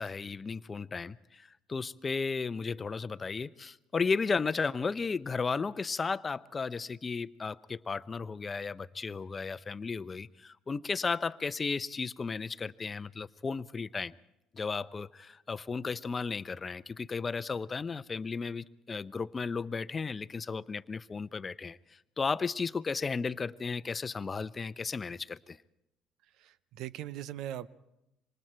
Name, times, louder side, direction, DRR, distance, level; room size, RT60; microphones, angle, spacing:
voice 1, 0.0-14.1 14.5-25.6, left 4 dB, 30° left, 0.7 m, -34 dB
voice 2, 26.4-27.7, right 12 dB, 65° right, 0.8 m, -40 dB
27.0 x 25.5 x 4.5 m
hypercardioid pair, 60°, 0 cm